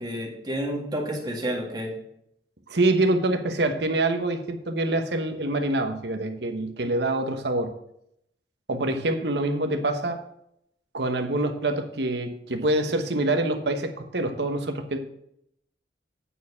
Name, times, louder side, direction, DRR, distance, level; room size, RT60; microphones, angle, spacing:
voice 1, 0.0-1.9 9.2-9.3, equal, 25° right, 0 dB, 1.9 m, -30 dB
voice 2, 2.7-7.7 8.7-10.2 10.9-15.0, right 2 dB, 70° right, 6 dB, 1.1 m, -25 dB
9.1 x 4.4 x 7.1 m, 0.75 s
head